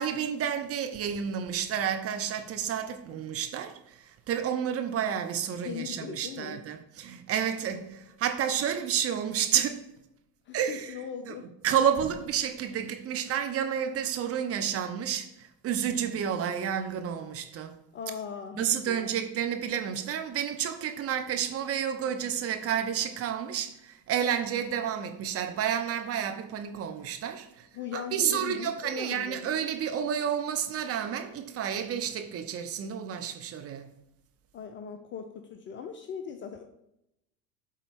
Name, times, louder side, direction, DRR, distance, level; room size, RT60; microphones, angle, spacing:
voice 1, 0.0-9.9 10.5-10.9 11.3-11.4 11.6-17.7 18.5-27.7 27.9-33.9, right 8 dB, 30° right, 0.7 m, -30 dB
voice 2, 5.6-6.6 8.7-8.8 10.5-11.5 17.9-19.2 27.7-29.5 34.5-36.6, left 7 dB, 25° left, 0.5 m, -39 dB
8.1 x 3.8 x 3.6 m
hypercardioid pair, 85°, 49 cm